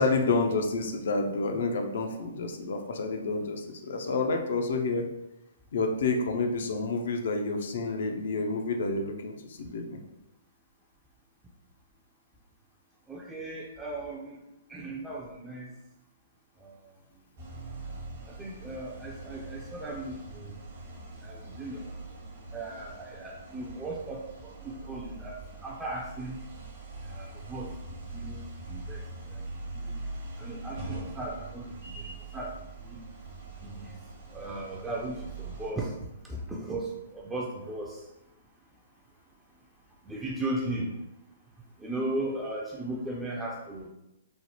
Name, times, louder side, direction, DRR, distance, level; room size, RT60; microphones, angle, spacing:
voice 1, 0.0-5.1 5.7-10.0, left 3 dB, 65° left, 4 dB, 0.4 m, -29 dB
voice 2, 13.1-14.4 14.7-15.7 16.6-16.9 17.4-17.5 18.3-20.6 21.2-21.9 22.5-26.4 27.0-29.5 29.7-29.9 30.4-33.0 33.6-34.0 34.3-36.0 36.2-38.1 40.0-40.9 41.8-43.9, right 2 dB, 10° right, -3 dB, 0.4 m, -37 dB
sound 1, 17.4-35.7, right 3 dB, 50° right, 0.8 m, -42 dB
3.1 x 2.0 x 2.8 m, 0.89 s
hypercardioid pair, 130°, 0 cm